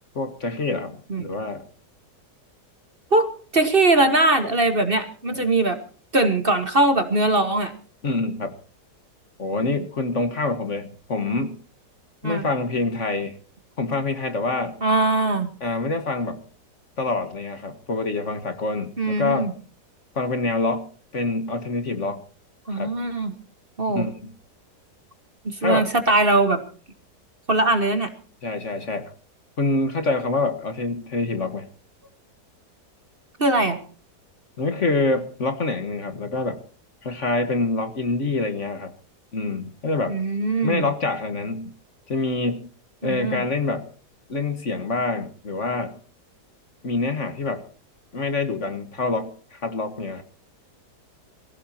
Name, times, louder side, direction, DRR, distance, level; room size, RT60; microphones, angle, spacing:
voice 1, 0.2-1.6 8.0-8.6 9.4-11.5 12.2-13.4 13.8-14.8 15.6-16.4 17.0-19.5 20.2-20.9 21.1-22.2 22.7-22.9 24.0-24.3 25.6-25.9 28.4-29.1 29.6-31.7 34.6-36.6 37.0-38.9 39.3-40.2 40.6-41.7 42.1-42.7 43.0-43.9 44.3-45.9 46.8-47.6 48.1-50.2, left 3 dB, 45° left, 9 dB, 1.7 m, -26 dB
voice 2, 3.5-5.8 6.1-7.7 9.5-9.6 12.2-12.4 14.8-15.5 19.0-19.5 22.7-23.3 23.8-24.0 25.4-26.6 27.5-28.1 33.4-33.8 40.1-40.9 43.0-43.4, right 2 dB, 35° right, 8 dB, 1.6 m, -21 dB
24.0 x 16.0 x 2.9 m, 0.41 s
omnidirectional pair, 1.8 m